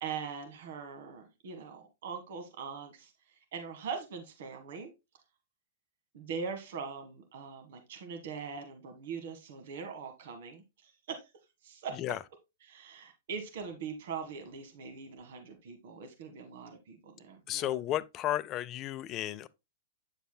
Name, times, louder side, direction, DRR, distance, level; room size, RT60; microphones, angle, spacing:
voice 1, 0.0-4.9 6.1-11.3 11.6-12.0 12.6-17.8, right 6 dB, 65° right, 1.6 m, -42 dB
voice 2, 17.5-19.5, left 13 dB, 35° left, 0.5 m, -33 dB
9.0 x 7.1 x 2.2 m
hypercardioid pair, 115°, 0 cm